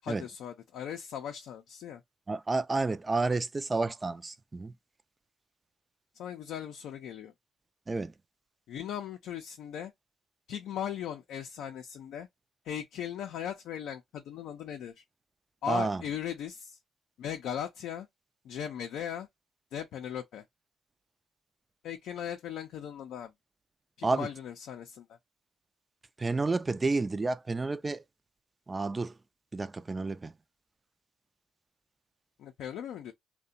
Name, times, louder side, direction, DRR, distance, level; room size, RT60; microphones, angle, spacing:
voice 1, 0.0-2.0 6.1-7.3 8.7-9.9 10.5-12.3 12.6-15.0 15.6-16.8 17.2-18.1 18.4-19.3 19.7-20.4 21.8-23.3 24.0-25.2 32.4-33.1, left 9 dB, 75° left, 0.4 m, -38 dB
voice 2, 2.3-4.7 7.9-8.1 15.7-16.0 24.0-24.3 26.2-28.0 28.7-29.1 29.5-30.3, right 3 dB, 30° right, 0.3 m, -30 dB
2.7 x 2.1 x 2.4 m
supercardioid pair, 55°, 0 cm